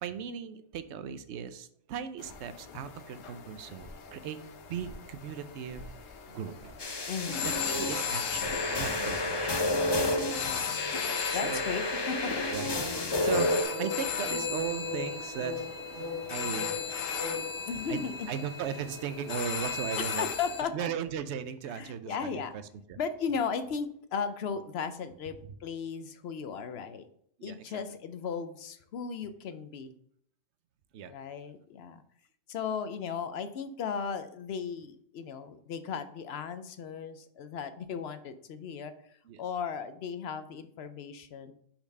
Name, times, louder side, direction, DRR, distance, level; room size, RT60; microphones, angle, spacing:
voice 1, 0.0-4.4 4.7-5.8 6.3-6.6 7.4-9.7 11.3-11.6 12.5-12.7 13.0-13.5 13.8-15.5 15.9-16.9 17.9-18.0 18.3-20.3 20.7-22.6 22.9-23.0 27.4-27.8 30.9-31.2 39.3-39.4, right 8 dB, 70° right, 11 dB, 0.8 m, -37 dB
sound 1, 2.2-20.6, left 7 dB, 90° left, 1.1 m, -38 dB
sound 2, 2.3-2.4 3.8-3.9 4.8-5.3 5.7-6.1 6.6-6.8 7.5-7.6 8.4-8.7 12.3-17.5, left 3 dB, 85° right, 2.5 m, -39 dB
sound 3, 6.8-13.6, left 2 dB, 35° left, 0.4 m, -31 dB
voice 2, 7.1-7.6 10.1-10.8 11.3-12.3 13.3-13.5 17.7-18.3 20.0-20.9 21.7-22.5 23.0-25.3 25.6-27.1 27.4-30.0 31.1-32.0 32.5-41.5, left 6 dB, 65° left, 10 dB, 0.8 m, -36 dB
5.8 x 4.4 x 5.3 m, 0.67 s
omnidirectional pair, 1.3 m